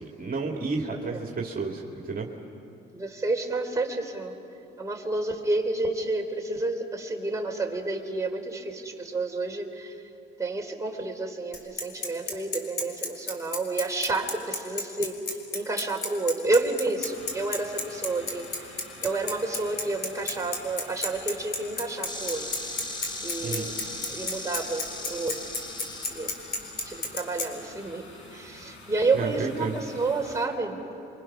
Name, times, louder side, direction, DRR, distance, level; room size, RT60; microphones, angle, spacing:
voice 1, 0.0-2.3 23.4-23.7 29.1-29.8, right 4 dB, 45° right, 0 dB, 2.4 m, -31 dB
voice 2, 2.9-4.3 4.8-10.0 10.4-15.2 15.5-18.4 19.0-22.8 23.2-25.5 26.1-26.3 26.8-28.1 28.3-30.8, right 3 dB, 15° right, 0 dB, 3.5 m, -30 dB
Bicycle, 11.5-27.5, left 3 dB, 55° left, 4.1 m, -31 dB
sound 1, 17.0-30.5, left 2 dB, 75° left, 6.3 m, -47 dB
Insect, 22.1-27.0, left 2 dB, 20° left, 1.8 m, -38 dB
29.0 x 24.5 x 6.1 m, 2.8 s
cardioid pair, 90°, 20 cm